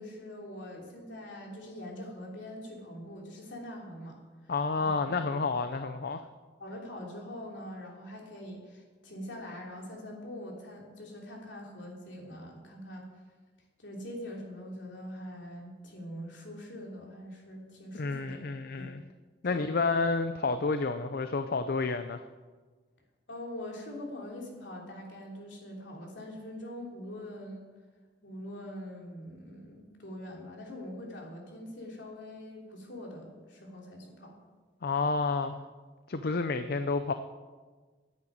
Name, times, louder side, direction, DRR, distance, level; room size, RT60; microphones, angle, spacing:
voice 1, 0.0-4.2 4.4-4.5 4.8-5.1 5.8-5.9 6.6-13.1 13.8-18.5 18.8-18.9 19.5-19.8 23.3-27.6 28.2-34.3, left 1 dB, 70° left, -1 dB, 3.4 m, -43 dB
voice 2, 4.5-6.2 17.9-19.0 19.4-22.2 34.8-35.6 36.1-37.1, left 4 dB, 55° left, 9 dB, 0.6 m, -30 dB
10.5 x 8.8 x 8.6 m, 1.4 s
head